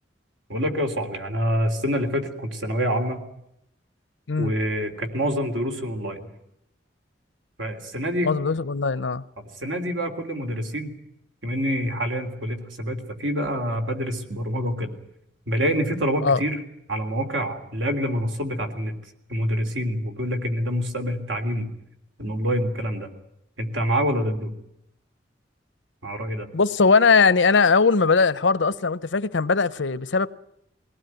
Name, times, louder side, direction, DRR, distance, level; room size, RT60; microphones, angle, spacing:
voice 1, 0.5-3.2 4.4-6.2 7.6-8.3 9.4-10.9 11.4-14.9 15.5-16.6 16.9-18.9 19.3-21.7 22.2-23.1 23.6-24.5 26.0-26.5, equal, 90° right, 3.3 m, -26 dB
voice 2, 8.2-9.2 16.2-16.4 26.5-30.3, left 4 dB, 90° left, 0.8 m, -20 dB
21.5 x 18.5 x 9.2 m
head